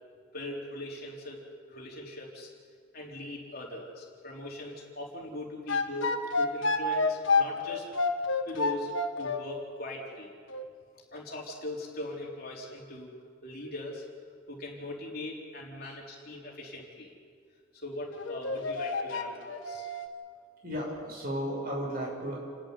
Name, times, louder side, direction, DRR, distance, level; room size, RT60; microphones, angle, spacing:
voice 1, 0.3-1.4 1.7-2.5 2.9-7.8 8.5-8.9 9.2-10.3 11.1-13.1 13.4-14.1 14.5-17.1 17.7-19.9, left 1 dB, 45° left, -2 dB, 4.1 m, -40 dB
sound 1, 5.7-9.4 10.5-10.7 18.1-20.1, left 3 dB, 65° left, 1.5 m, -29 dB
voice 2, 20.6-22.4, equal, 45° right, -2 dB, 6.9 m, -34 dB
29.5 x 11.5 x 9.7 m, 2.1 s
head